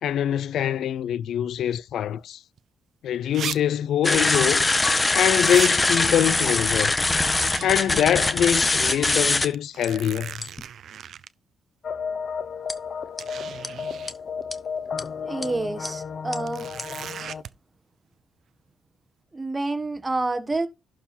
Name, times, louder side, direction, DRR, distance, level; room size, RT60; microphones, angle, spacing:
voice 1, 0.0-2.4 3.0-4.6 5.1-6.9 7.6-10.4, left 10 dB, 70° left, 0.4 m, -24 dB
sound 1, 2.6-2.7 3.3-3.6 3.8-3.9 5.4-5.7 7.3-8.2 8.7-8.8 9.5-11.3 12.4-12.5 13.2-14.1 16.5-17.5, right 9 dB, 65° right, 0.6 m, -36 dB
sound 2, 4.0-9.5 9.8-9.9 10.4-10.6 12.7-12.8 13.2-13.3 13.6-13.7 14.1-14.2 14.5-14.6 15.0-15.1 15.4-15.5 15.9-16.0 16.3-16.4 16.8-16.9, left 2 dB, 20° left, 1.2 m, -22 dB
sound 3, 11.8-17.4, left 6 dB, 50° left, 0.8 m, -33 dB
voice 2, 15.2-16.7 19.3-20.7, right 2 dB, 20° right, 1.5 m, -28 dB
11.5 x 4.8 x 4.3 m
cardioid pair, 90°, 0 cm